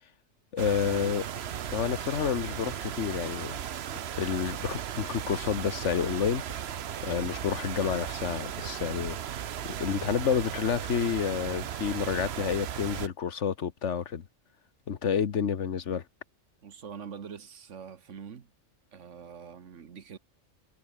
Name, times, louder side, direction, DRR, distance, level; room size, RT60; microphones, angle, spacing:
voice 1, 0.5-1.3 1.7-3.6 4.2-6.6 7.0-9.2 9.6-14.2 14.9-16.0, left 7 dB, 75° left, 1.5 m, -29 dB
sound 1, 0.6-13.1, right 9 dB, 65° right, 1.0 m, -36 dB
voice 2, 16.6-18.5 18.9-20.2, right 7 dB, 85° right, 1.6 m, -44 dB
omnidirectional pair, 1.2 m